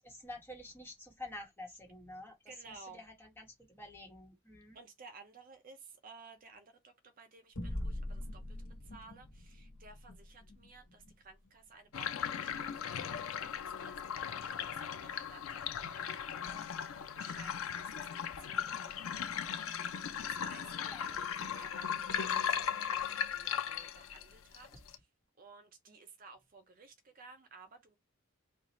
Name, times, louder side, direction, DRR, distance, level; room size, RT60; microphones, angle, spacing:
voice 1, 0.0-2.4 2.8-4.8 20.3-20.4 20.9-21.1, left 1 dB, 10° left, 1.2 m, -49 dB
voice 2, 2.5-3.0 4.7-25.1 25.4-28.0, right 4 dB, 45° right, 0.5 m, -57 dB
sound 1, 7.5-12.4, left 1 dB, 65° left, 1.3 m, -44 dB
sound 2, 11.9-24.9, left 8 dB, 85° left, 0.4 m, -37 dB
4.2 x 2.4 x 3.0 m
head